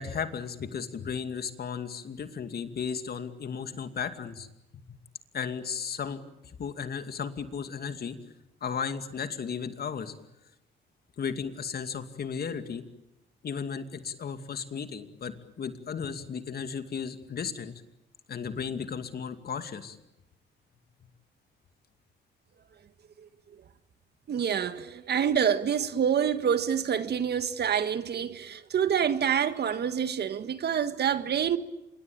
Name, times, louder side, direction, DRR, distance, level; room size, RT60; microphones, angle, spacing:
voice 1, 0.0-4.5 5.3-8.2 8.6-10.1 11.2-12.8 13.4-17.7 18.3-20.0, left 6 dB, 50° left, 2.5 m, -35 dB
voice 2, 24.3-31.6, right 8 dB, 55° right, 1.7 m, -27 dB
26.5 x 23.5 x 8.8 m
cardioid pair, 90°, 20 cm